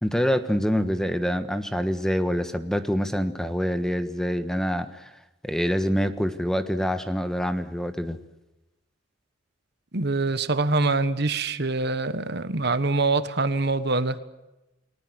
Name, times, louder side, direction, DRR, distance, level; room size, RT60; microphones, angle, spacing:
voice 1, 0.0-5.1 5.4-8.2, equal, 5° left, 9 dB, 1.3 m, -26 dB
voice 2, 9.9-14.2, right 3 dB, 55° right, 12 dB, 1.3 m, -24 dB
29.5 x 19.5 x 8.0 m, 0.97 s
head